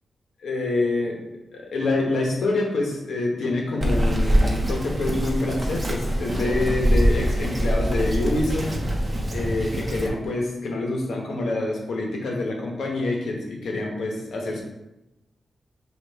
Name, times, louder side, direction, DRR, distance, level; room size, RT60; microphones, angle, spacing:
voice 1, 0.4-1.2 1.5-8.7 9.3-14.6, left 2 dB, 80° left, 0 dB, 0.9 m, -26 dB
Bird vocalization bird call bird song, 3.8-10.1, equal, 25° right, 0.7 m, -24 dB
5.0 x 2.4 x 3.5 m, 0.94 s
wide cardioid pair, 125°, 0 cm